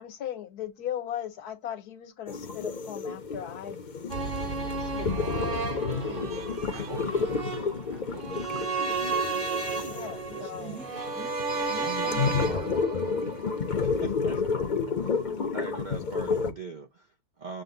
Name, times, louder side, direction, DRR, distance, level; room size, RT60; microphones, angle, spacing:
voice 1, 0.0-3.8 4.8-5.1 5.4-5.7 9.9-10.8, left 10 dB, 75° left, 1.4 m, -38 dB
sound 1, 2.3-16.5, left 5 dB, 45° left, 0.6 m, -31 dB
sound 2, 4.1-14.2 14.5-14.6, right 4 dB, 40° right, 0.9 m, -33 dB
voice 2, 5.0-5.5 5.8-6.3 6.7-8.7 10.3-11.4 11.7-12.6, right 5 dB, 60° right, 1.7 m, -45 dB
voice 3, 10.6-10.9 11.8-13.4 13.8-14.7 15.0-15.2 15.5-17.6, right 5 dB, 85° right, 0.4 m, -41 dB
6.4 x 2.2 x 3.8 m
omnidirectional pair, 1.7 m